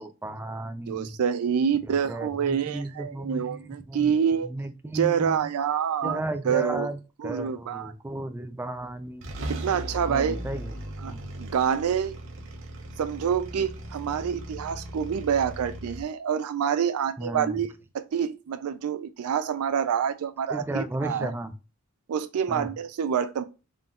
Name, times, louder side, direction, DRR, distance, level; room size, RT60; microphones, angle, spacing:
voice 1, 0.0-1.2 2.1-4.1 4.4-5.5 6.0-7.0 7.2-9.3 10.1-10.7 11.0-11.2 17.2-17.6 20.5-21.5 22.5-22.7, right 2 dB, 10° right, 0.3 m, -34 dB
voice 2, 0.9-4.5 4.9-6.2 6.4-6.9 7.2-7.9 9.5-10.4 11.0-12.1 13.0-21.3 22.1-23.4, right 7 dB, 80° right, 0.4 m, -27 dB
sound 1, 8.7-8.9 9.2-16.0, right 1 dB, 60° right, 0.8 m, -38 dB
3.8 x 3.6 x 2.3 m
head